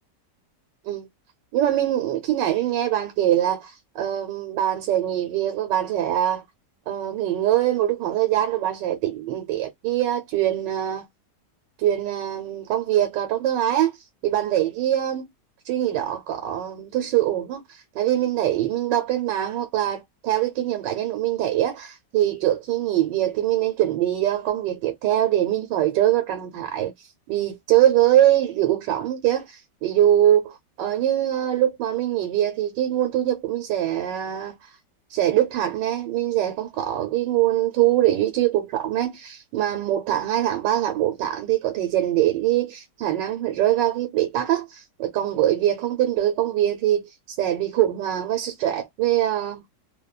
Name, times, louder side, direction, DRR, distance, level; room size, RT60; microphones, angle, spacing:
voice 1, 1.5-6.4 6.9-11.1 11.8-13.9 14.2-15.3 15.7-26.9 27.3-34.6 35.1-49.6, right 12 dB, 90° right, 1.3 m, -23 dB
2.9 x 2.1 x 2.2 m
omnidirectional pair, 1.9 m